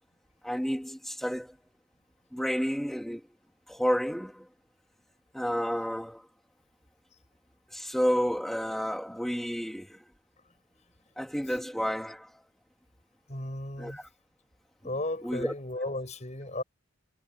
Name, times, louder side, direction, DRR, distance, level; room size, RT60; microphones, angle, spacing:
voice 1, 0.4-1.5 2.3-3.2 3.7-4.4 5.3-6.2 7.7-10.0 11.2-12.4 13.8-14.1 15.2-15.5, equal, ahead, 2.0 m, -30 dB
voice 2, 13.3-14.0 14.8-16.6, left 1 dB, 35° left, 5.7 m, -35 dB
head